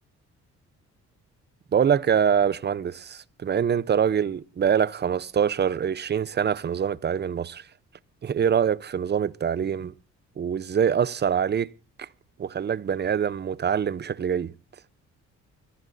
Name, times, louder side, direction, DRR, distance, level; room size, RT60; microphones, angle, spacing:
voice 1, 1.7-7.7 8.2-9.9 10.4-11.7 12.0-12.1 12.4-14.5, right 8 dB, 35° right, 0.7 m, -24 dB
25.0 x 15.5 x 2.6 m
cardioid pair, 90°, 30 cm